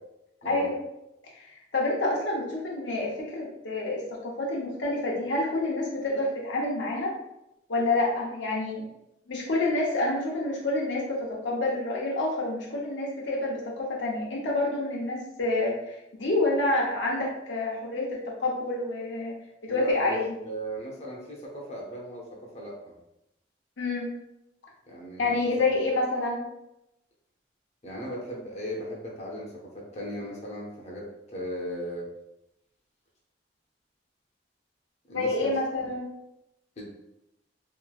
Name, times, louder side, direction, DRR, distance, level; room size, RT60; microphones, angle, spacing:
voice 1, 1.7-7.1 7.7-8.8 9.3-19.3 19.6-20.2 23.8-24.1 25.2-26.4 35.1-36.1, left 2 dB, 90° left, -3 dB, 0.7 m, -28 dB
voice 2, 19.7-20.2 20.4-22.9 24.9-25.3 27.8-32.1 35.1-35.5 35.8-35.9 36.8-36.9, equal, 40° left, -3 dB, 0.6 m, -37 dB
2.9 x 2.5 x 2.3 m, 0.87 s
head